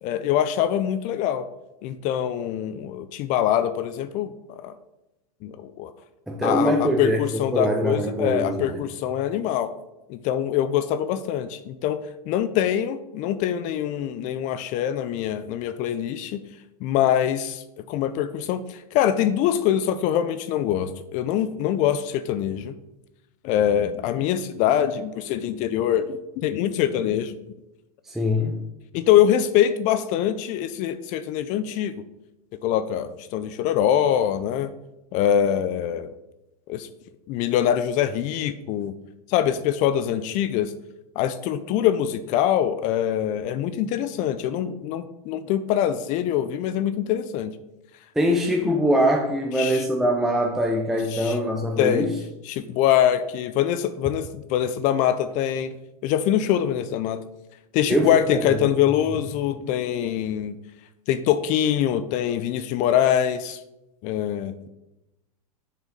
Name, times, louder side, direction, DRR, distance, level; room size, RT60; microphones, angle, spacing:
voice 1, 0.0-1.5 1.8-4.7 5.4-5.9 6.4-9.7 10.1-12.0 12.3-16.4 16.8-22.7 23.4-27.3 28.9-32.0 32.6-34.7 35.1-36.1 36.7-36.9 37.3-38.9 39.3-40.7 41.2-47.5 49.6-49.8 51.1-51.4 51.8-52.1 52.4-55.7 56.0-57.2 57.7-60.6 61.1-63.6 64.0-64.7, left 10 dB, 40° left, 12 dB, 0.4 m, -24 dB
voice 2, 6.3-7.2 7.5-8.8 28.1-28.6 48.2-52.1 57.9-58.6, equal, ahead, 0 dB, 0.6 m, -23 dB
7.2 x 4.0 x 3.9 m, 0.93 s
hypercardioid pair, 110°, 20 cm